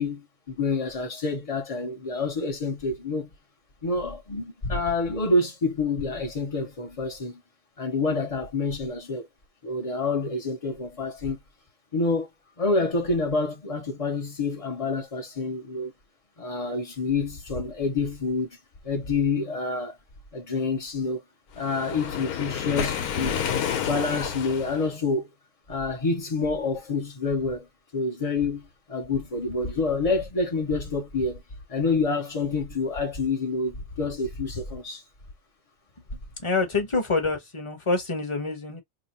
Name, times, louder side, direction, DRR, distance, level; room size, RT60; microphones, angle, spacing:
voice 1, 0.0-3.3 3.8-7.4 7.8-9.3 9.6-11.4 11.9-12.3 12.6-15.9 16.4-18.5 18.8-20.0 20.3-21.2 21.5-23.4 23.8-25.3 25.7-27.7 27.9-31.4 31.7-35.0, left 3 dB, 50° left, 0.4 m, -27 dB
Waves surf, 21.6-24.9, left 8 dB, 70° left, 1.1 m, -29 dB
voice 2, 36.4-38.8, left 3 dB, 25° left, 0.8 m, -26 dB
2.9 x 2.2 x 4.0 m
omnidirectional pair, 1.7 m